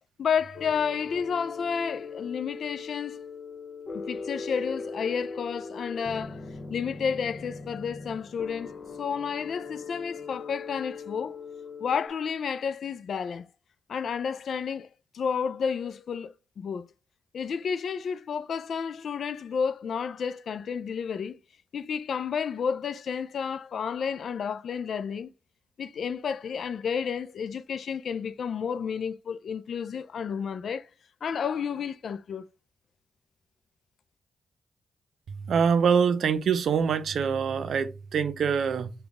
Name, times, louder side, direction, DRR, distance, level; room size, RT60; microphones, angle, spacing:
voice 1, 0.2-3.2 3.9-6.4 6.7-11.4 11.8-13.5 13.9-14.9 15.1-16.9 17.3-21.4 21.7-25.3 25.8-30.9 31.2-32.5, left 6 dB, 70° left, 0.3 m, -31 dB
sound 1, 0.5-12.1, left 4 dB, 55° left, 1.1 m, -40 dB
voice 2, 35.3-38.9, right 6 dB, 70° right, 0.5 m, -25 dB
5.1 x 2.3 x 3.6 m
supercardioid pair, 45°, 0 cm